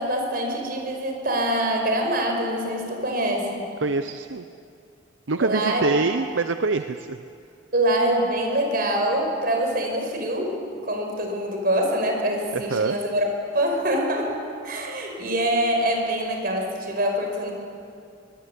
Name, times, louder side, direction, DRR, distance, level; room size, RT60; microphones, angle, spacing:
voice 1, 0.0-3.7 5.4-5.8 7.7-10.6 10.9-14.3 14.6-17.5, right 1 dB, 50° right, 2 dB, 5.4 m, -24 dB
voice 2, 3.8-4.5 5.3-7.2 12.5-13.0, right 3 dB, 75° right, 9 dB, 0.7 m, -25 dB
24.0 x 20.5 x 8.3 m, 2.5 s
head